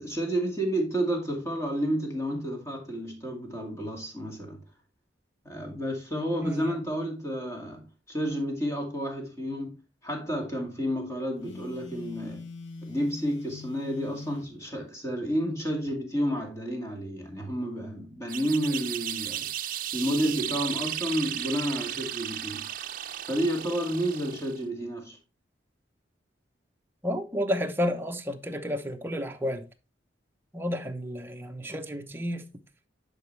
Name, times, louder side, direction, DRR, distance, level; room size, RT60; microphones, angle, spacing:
voice 1, 0.0-4.6 5.4-9.8 10.0-12.5 12.8-22.7 23.3-25.2, equal, 15° left, 2.3 m, -31 dB
voice 2, 6.4-6.8 27.0-29.6 30.5-32.4, equal, 10° right, 0.9 m, -31 dB
Telephone, 11.4-14.5, left 4 dB, 80° left, 1.0 m, -43 dB
sound 1, 18.3-24.6, right 11 dB, 50° right, 0.6 m, -35 dB
10.0 x 5.1 x 3.2 m
head